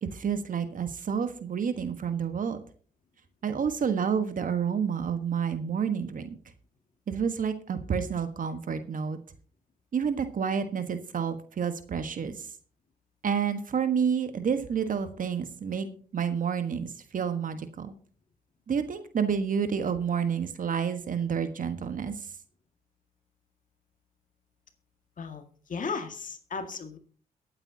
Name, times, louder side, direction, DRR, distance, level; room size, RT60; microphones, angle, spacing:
voice 1, 0.0-2.6 3.4-6.3 7.1-9.2 9.9-12.5 13.2-15.9 16.1-17.9 18.7-22.1, right 7 dB, 55° right, 9 dB, 1.4 m, -29 dB
voice 2, 25.7-27.0, left 5 dB, 55° left, 6 dB, 2.1 m, -35 dB
22.5 x 8.8 x 2.8 m, 0.43 s
supercardioid pair, 55°, 16 cm